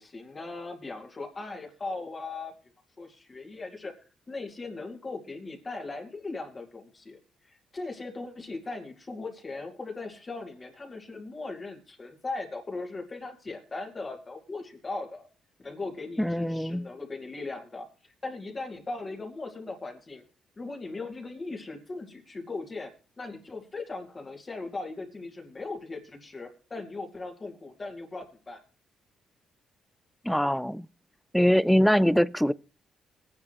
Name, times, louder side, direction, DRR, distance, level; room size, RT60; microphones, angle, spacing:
voice 1, 0.0-2.5 3.0-3.9 4.3-7.2 7.4-15.3 15.6-20.2 20.6-22.9 23.2-28.6, left 3 dB, 30° left, 2.4 m, -38 dB
voice 2, 16.2-16.9 30.2-30.9 31.3-32.5, equal, ahead, 0.5 m, -23 dB
18.5 x 9.8 x 3.0 m
cardioid pair, 90°, 0 cm